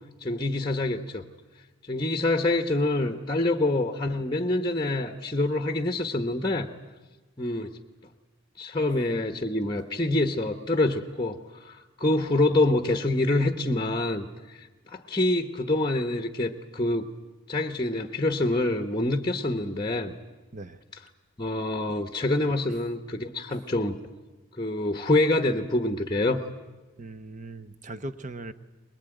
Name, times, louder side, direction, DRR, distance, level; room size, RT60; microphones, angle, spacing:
voice 1, 0.2-1.2 1.9-6.7 7.4-7.8 8.6-17.1 17.5-20.1 21.4-24.0 24.6-26.4, left 2 dB, 20° left, 7 dB, 1.0 m, -26 dB
voice 2, 20.5-20.8 21.9-22.0 27.0-28.5, right 2 dB, 35° right, 12 dB, 0.9 m, -39 dB
23.0 x 21.0 x 9.1 m, 1.2 s
head